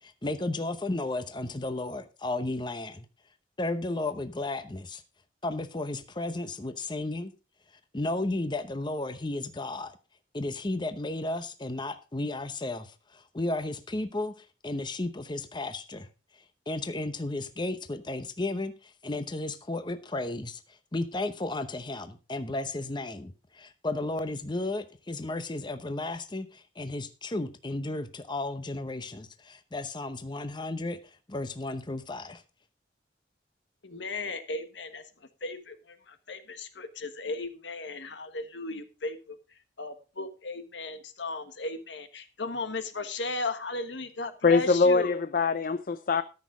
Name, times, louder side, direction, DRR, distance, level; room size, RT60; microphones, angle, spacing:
voice 1, 0.0-3.1 3.6-5.0 5.4-7.3 7.9-10.0 10.3-16.1 16.7-20.6 20.9-31.0 31.3-32.4, left 2 dB, 25° left, 0.8 m, -33 dB
voice 2, 33.8-35.0 35.4-39.4 39.8-45.1, left 2 dB, 80° left, 1.4 m, -36 dB
voice 3, 44.4-46.2, left 4 dB, 50° left, 0.5 m, -23 dB
13.5 x 6.3 x 4.9 m
head